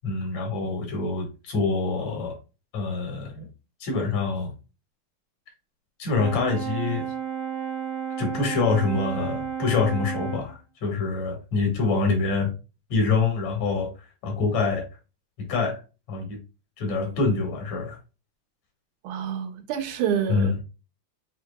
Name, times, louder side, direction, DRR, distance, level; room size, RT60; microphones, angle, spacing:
voice 1, 0.0-2.4 2.7-3.5 3.8-4.5 6.0-7.0 8.2-12.5 12.9-13.9 14.2-14.9 15.4-15.8 16.1-16.4 16.8-18.0 20.3-20.5, left 4 dB, 65° left, 3.0 m, -25 dB
Brass instrument, 6.1-10.5, right 8 dB, 65° right, 1.6 m, -32 dB
voice 2, 19.0-20.6, right 8 dB, 90° right, 2.4 m, -28 dB
7.7 x 2.9 x 2.2 m
omnidirectional pair, 3.3 m